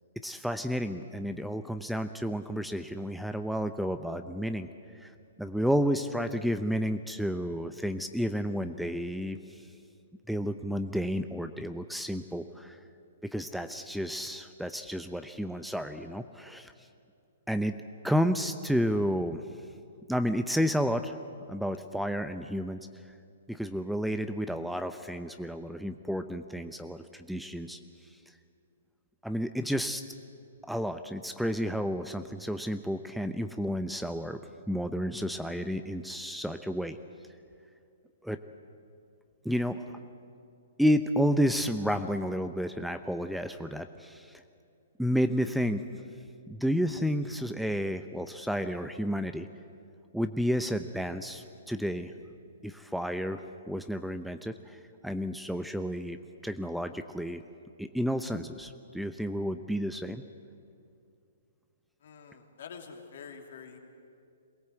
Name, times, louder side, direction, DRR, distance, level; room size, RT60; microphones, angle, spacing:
voice 1, 0.2-4.7 4.9-9.7 10.3-12.8 13.2-16.9 17.5-17.8 18.0-19.4 20.1-21.2 21.5-22.9 23.5-27.8 28.3-28.4 29.2-30.0 30.6-34.4 34.7-37.0 38.2-38.4 39.4-40.0 40.8-44.4 45.0-46.0 46.5-49.5 50.1-52.1 52.6-56.2 56.4-57.4 57.8-60.2, equal, ahead, 9 dB, 0.7 m, -31 dB
voice 2, 62.0-63.8, left 6 dB, 60° left, 3 dB, 2.9 m, -46 dB
22.5 x 18.0 x 8.1 m, 2.4 s
figure-of-eight pair, 120°, 0 cm